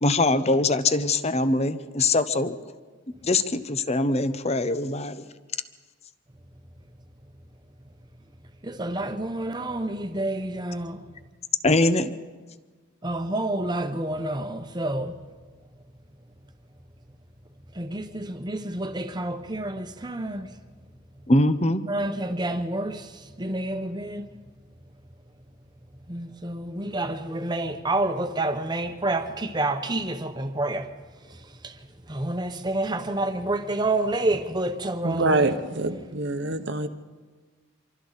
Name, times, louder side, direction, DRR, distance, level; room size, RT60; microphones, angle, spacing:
voice 1, 0.0-2.6 3.2-5.2 11.6-12.1 21.3-21.8, left 2 dB, 30° left, 0.8 m, -22 dB
voice 2, 8.6-11.1 13.0-15.2 17.7-20.5 21.9-24.3 26.1-30.9 31.2-35.4, right 2 dB, 20° right, 1.1 m, -29 dB
voice 3, 35.0-36.9, right 2 dB, 55° right, 1.1 m, -25 dB
26.5 x 24.5 x 4.1 m
head